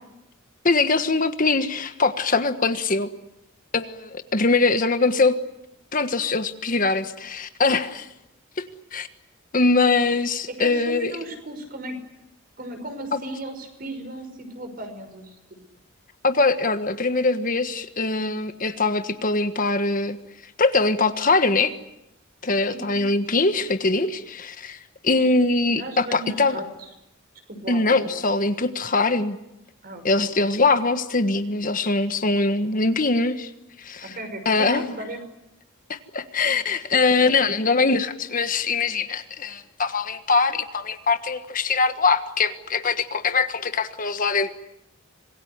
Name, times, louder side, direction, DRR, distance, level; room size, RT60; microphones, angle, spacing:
voice 1, 0.6-3.1 3.7-5.4 5.9-8.1 8.6-9.1 9.5-11.1 13.1-13.2 16.2-20.2 20.6-21.7 22.4-26.6 27.7-29.4 30.0-33.5 33.8-34.2 34.4-34.9 35.9-44.5, left 3 dB, 40° left, 9 dB, 1.4 m, -22 dB
voice 2, 10.6-12.0 12.6-15.3 22.6-23.0 25.7-26.6 27.5-28.1 29.8-30.3 34.0-35.2, right 1 dB, 45° right, 7 dB, 5.9 m, -36 dB
26.5 x 21.0 x 9.6 m, 0.88 s
head